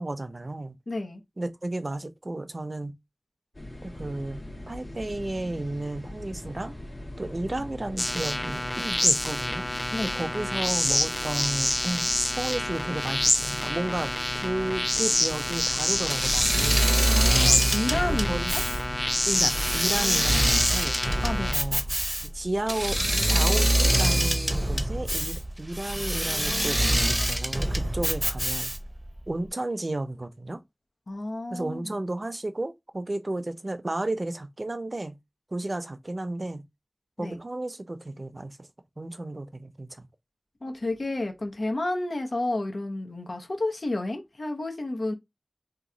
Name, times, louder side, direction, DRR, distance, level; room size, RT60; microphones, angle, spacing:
voice 1, 0.0-0.8 1.4-3.0 3.8-4.4 4.7-6.7 7.2-9.7 10.0-12.1 12.3-16.9 18.1-18.5 18.9-19.0 19.3-21.0 21.5-21.8 22.2-28.7 29.3-30.6 31.5-35.2 35.5-36.6 37.2-38.7 39.0-40.1, right 2 dB, 55° right, 0.5 m, -33 dB
voice 2, 0.9-1.2 9.9-10.2 17.1-18.6 21.2-21.5 31.1-32.0 37.2-37.4 40.6-45.1, left 2 dB, 85° left, 0.8 m, -31 dB
sound 1, 3.5-19.8, left 1 dB, 55° left, 1.4 m, -41 dB
sound 2, 8.0-21.5, left 1 dB, 35° left, 0.8 m, -27 dB
Engine / Mechanisms, 16.1-29.0, right 1 dB, 10° right, 0.6 m, -25 dB
2.9 x 2.2 x 3.7 m
wide cardioid pair, 55°, 0 cm